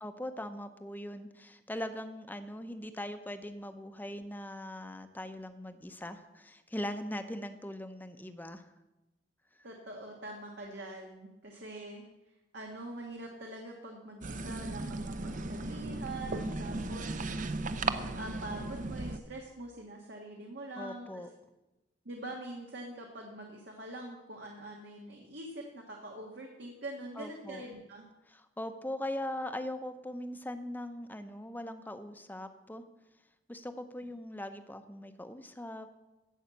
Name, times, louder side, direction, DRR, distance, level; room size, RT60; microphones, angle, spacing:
voice 1, 0.0-8.7 16.4-17.0 20.8-21.3 27.2-27.6 28.3-32.8 33.5-35.9, left 1 dB, 10° left, 9 dB, 0.8 m, -40 dB
voice 2, 9.6-12.1 12.5-17.5 17.9-21.2 22.0-28.0 34.0-34.1, right 1 dB, 75° right, 0 dB, 1.6 m, -44 dB
sound 1, 14.2-19.2, right 3 dB, 45° right, 0.7 m, -36 dB
15.0 x 5.6 x 8.2 m, 1.0 s
head